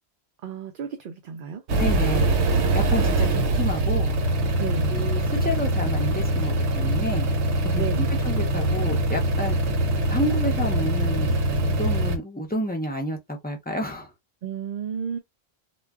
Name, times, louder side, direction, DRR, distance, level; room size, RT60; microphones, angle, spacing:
voice 1, 0.4-1.6 4.6-5.0 7.7-8.1 14.4-15.2, right 7 dB, 60° right, 0.7 m, -32 dB
sound 1, 1.7-12.2, right 1 dB, 90° right, 0.9 m, -23 dB
voice 2, 1.8-2.3 2.7-4.2 4.9-7.3 7.6-9.6 10.1-14.1, equal, 10° left, 0.5 m, -30 dB
2.2 x 2.0 x 3.5 m
omnidirectional pair, 1.1 m